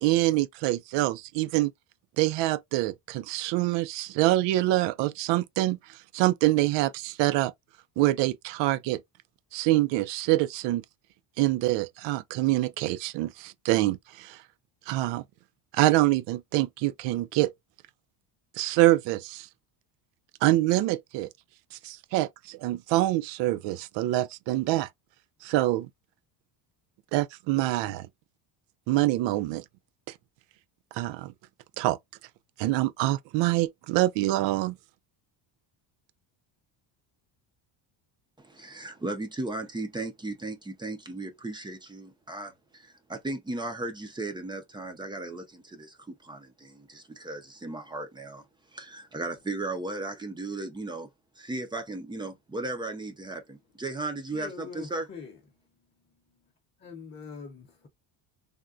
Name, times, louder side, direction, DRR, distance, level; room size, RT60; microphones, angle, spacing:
voice 1, 0.0-1.7 2.2-7.5 8.0-9.0 9.5-10.8 11.4-14.4 14.9-15.2 15.7-17.5 18.6-19.5 20.4-21.3 21.7-24.9 25.4-25.9 27.1-28.1 28.9-29.6 30.9-31.3 31.8-32.0 32.6-34.8, right 16 dB, 65° right, 0.5 m, -25 dB
voice 2, 38.4-48.5 48.7-51.1 51.4-55.1, right 2 dB, 10° right, 0.4 m, -36 dB
voice 3, 54.3-55.4 56.8-57.9, left 5 dB, 20° left, 0.7 m, -43 dB
3.6 x 2.2 x 2.4 m
cardioid pair, 155°, 48 cm